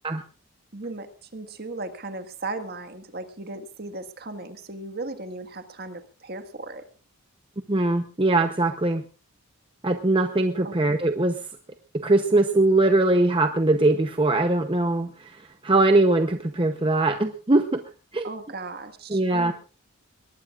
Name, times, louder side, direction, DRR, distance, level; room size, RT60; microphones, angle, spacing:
voice 1, 0.7-6.9 10.6-10.7 18.2-19.5, right 2 dB, 45° right, 8 dB, 1.7 m, -36 dB
voice 2, 7.7-9.0 9.8-11.4 12.0-15.1 15.6-17.8 18.1-18.3 19.1-19.5, right 2 dB, 25° right, 6 dB, 0.8 m, -21 dB
22.0 x 19.0 x 2.5 m, 0.34 s
head